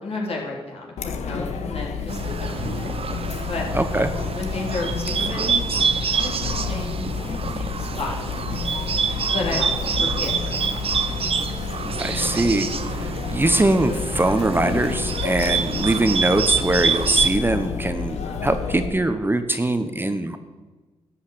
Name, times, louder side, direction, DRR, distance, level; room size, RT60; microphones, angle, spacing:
voice 1, 0.0-3.0 3.5-3.7 4.3-8.1 8.5-8.9 9.3-9.7 10.0-10.8 18.1-18.4, left 3 dB, 60° left, -2 dB, 3.3 m, -33 dB
Chatter, 1.0-18.9, left 5 dB, 85° left, 1.0 m, -30 dB
Bird, 2.1-17.3, right 6 dB, 60° right, 0.8 m, -27 dB
voice 2, 3.7-4.1 12.0-12.7 13.0-20.4, right 2 dB, 20° right, 8 dB, 1.0 m, -22 dB
12.0 x 5.7 x 8.3 m, 1.3 s
cardioid pair, 55°, 11 cm